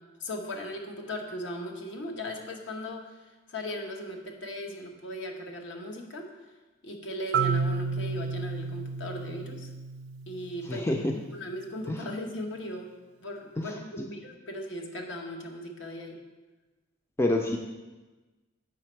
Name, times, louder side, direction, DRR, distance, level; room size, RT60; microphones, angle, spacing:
voice 1, 0.2-3.2 3.5-6.3 6.8-9.7 10.3-12.9 13.2-16.2, left 1 dB, 65° left, 2 dB, 1.0 m, -38 dB
Marimba xylophone, 7.3-11.2, right 5 dB, 65° right, 0.3 m, -32 dB
voice 2, 10.7-11.1 11.9-12.0 13.6-13.7 17.2-17.6, left 1 dB, 10° left, 3 dB, 0.3 m, -27 dB
7.2 x 5.1 x 4.5 m, 1.2 s
head